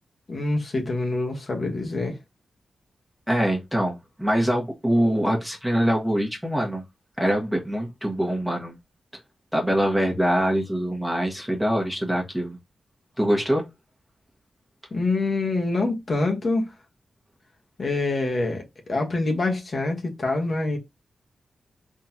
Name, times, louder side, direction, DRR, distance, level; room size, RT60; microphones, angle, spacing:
voice 1, 0.3-2.2 14.9-16.7 17.8-18.6 18.9-20.8, left 2 dB, 50° left, 1.3 m, -25 dB
voice 2, 3.3-6.8 7.2-8.8 9.5-12.6 13.2-13.6, equal, 5° right, 1.4 m, -24 dB
3.8 x 3.4 x 2.9 m
cardioid pair, 70°, 0 cm